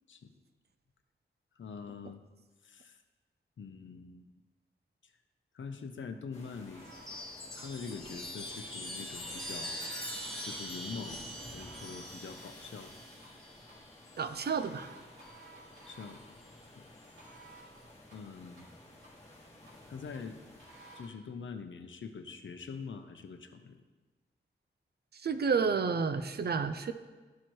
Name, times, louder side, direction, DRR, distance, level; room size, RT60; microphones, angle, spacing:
voice 1, 1.6-2.2 2.6-3.0 3.6-4.3 5.5-7.0 7.5-9.9 10.5-11.2 11.5-12.9 15.8-16.2 16.8-16.9 18.1-18.7 19.9-20.4 20.9-23.8, left 5 dB, 70° left, 7 dB, 0.7 m, -44 dB
sound 1, 6.3-21.0, left 1 dB, 35° left, 1.5 m, -53 dB
sound 2, 6.7-21.1, right 2 dB, 75° right, 2.2 m, -58 dB
Chime, 6.8-14.6 15.9-16.5, equal, ahead, 2.4 m, -43 dB
voice 2, 14.2-14.9 25.2-26.9, right 5 dB, 55° right, 11 dB, 0.5 m, -30 dB
12.5 x 4.4 x 3.1 m, 1.3 s
wide cardioid pair, 90°, 20 cm